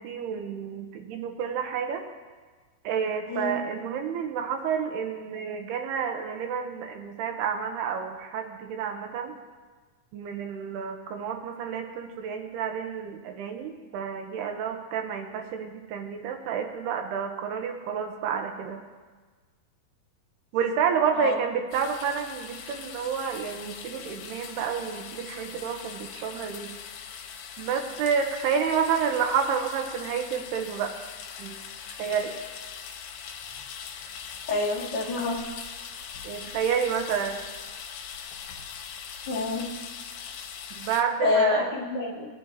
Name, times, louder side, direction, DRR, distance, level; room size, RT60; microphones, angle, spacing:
voice 1, 0.0-2.0 2.8-9.3 10.1-18.8 20.5-26.7 27.6-31.0 31.4-31.6 32.0-32.3 36.2-37.4 40.7-41.7, right 7 dB, 80° right, 4 dB, 2.9 m, -29 dB
sound 1, 21.7-41.0, left 7 dB, 80° left, 2.9 m, -41 dB
voice 2, 34.5-35.4 39.3-39.6 41.2-42.3, left 3 dB, 45° left, -4 dB, 1.4 m, -26 dB
20.5 x 10.0 x 2.9 m, 1.4 s
omnidirectional pair, 4.7 m